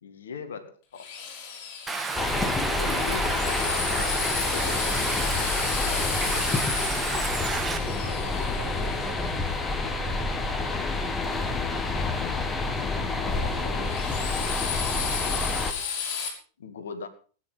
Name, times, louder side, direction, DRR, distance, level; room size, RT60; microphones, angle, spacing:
voice 1, 0.0-1.1 2.8-6.6 12.1-12.5 16.6-17.1, left 6 dB, 65° left, 10 dB, 1.9 m, -40 dB
Drill, 1.0-9.9 13.3-16.3, left 7 dB, 45° left, 5.4 m, -34 dB
Stream, 1.9-7.8, right 4 dB, 15° right, 2.0 m, -31 dB
sound 1, 2.1-15.7, left 3 dB, 15° left, 2.1 m, -28 dB
voice 2, 7.5-10.3 13.3-13.9, right 3 dB, 50° right, 1 dB, 6.8 m, -43 dB
18.5 x 9.9 x 5.6 m, 0.39 s
figure-of-eight pair, 90°, 0 cm